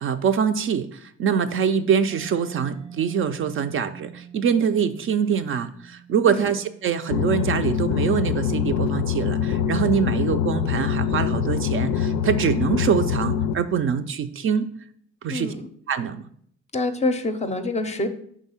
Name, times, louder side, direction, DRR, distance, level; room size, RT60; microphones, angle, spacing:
voice 1, 0.0-14.7 15.2-15.5 15.9-16.2, right 7 dB, 45° right, 9 dB, 0.4 m, -24 dB
Mallet percussion, 2.1-9.6, right 8 dB, 90° right, 0.6 m, -46 dB
sound 1, 7.1-13.5, left 8 dB, 80° left, 0.5 m, -24 dB
voice 2, 15.3-15.7 16.7-18.1, left 2 dB, 25° left, 8 dB, 0.5 m, -26 dB
5.3 x 3.6 x 5.5 m, 0.64 s
cardioid pair, 120°, 29 cm